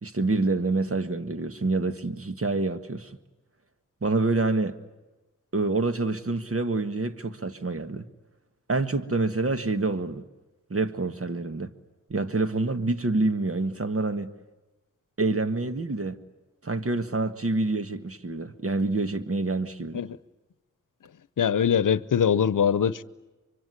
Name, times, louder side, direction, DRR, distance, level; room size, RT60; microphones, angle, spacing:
voice 1, 0.0-3.2 4.0-4.8 5.5-8.1 8.7-10.2 10.7-11.7 12.1-14.3 15.2-16.2 16.6-20.0, right 3 dB, 45° right, 1.8 m, -27 dB
voice 2, 21.4-23.0, left 8 dB, 75° left, 0.8 m, -22 dB
24.5 x 24.5 x 9.8 m
cardioid pair, 60°, 32 cm